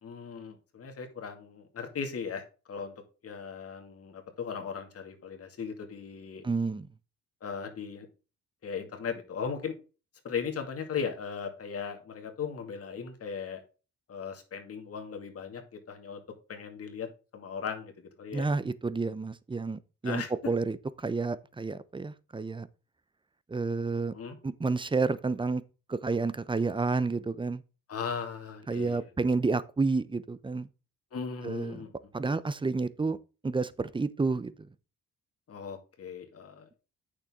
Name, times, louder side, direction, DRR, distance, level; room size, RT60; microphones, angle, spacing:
voice 1, 0.0-2.4 2.7-3.0 3.2-6.4 7.4-8.1 8.6-9.7 10.2-13.6 14.1-16.2 16.5-17.1 17.3-18.5 20.0-20.3 24.1-24.4 27.9-29.1 31.1-31.9 35.5-36.7, left 6 dB, 50° left, 2.2 m, -37 dB
voice 2, 6.4-6.9 18.3-22.7 23.5-24.1 24.4-25.6 25.9-27.6 28.7-30.7 31.4-31.8 32.1-33.2 33.4-34.5, right 4 dB, 15° right, 0.7 m, -30 dB
8.7 x 6.7 x 3.7 m
cardioid pair, 90°, 30 cm